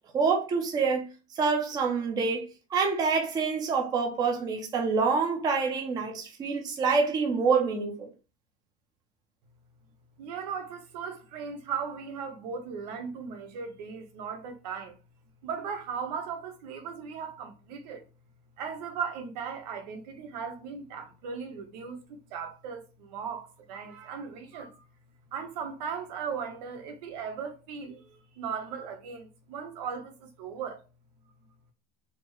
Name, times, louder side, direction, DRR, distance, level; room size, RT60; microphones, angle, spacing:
voice 1, 0.1-1.1 1.3-2.4 2.7-8.1, right 5 dB, 20° right, 0.6 m, -26 dB
voice 2, 10.2-15.0 15.4-18.0 18.6-24.9 25.3-30.8, right 6 dB, 85° right, 1.0 m, -37 dB
4.3 x 2.1 x 3.0 m
cardioid pair, 175°, 21 cm